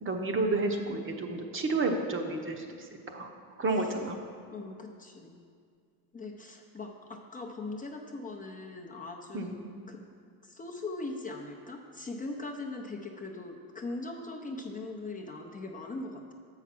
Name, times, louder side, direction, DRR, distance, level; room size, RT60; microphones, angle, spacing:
voice 1, 0.0-3.3 3.6-4.2 9.3-9.5, right 3 dB, 35° right, 3 dB, 0.8 m, -31 dB
voice 2, 4.5-5.5 6.1-9.6 9.9-10.0 10.4-16.3, left 2 dB, 20° left, 1 dB, 0.6 m, -40 dB
7.2 x 5.7 x 5.9 m, 2.2 s
cardioid pair, 115°, 38 cm